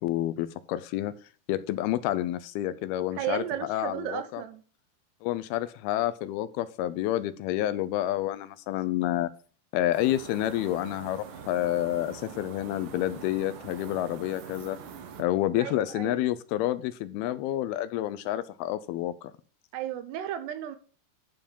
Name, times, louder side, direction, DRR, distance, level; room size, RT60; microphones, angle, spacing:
voice 1, 0.0-1.1 1.5-4.4 5.2-9.3 9.7-14.8 15.2-19.3, left 13 dB, 80° left, 2.5 m, -29 dB
voice 2, 3.2-4.6 15.6-16.2 19.7-20.8, right 11 dB, 85° right, 3.0 m, -34 dB
sound 1, 9.9-15.2, right 6 dB, 65° right, 2.3 m, -44 dB
11.5 x 4.8 x 5.3 m
omnidirectional pair, 4.7 m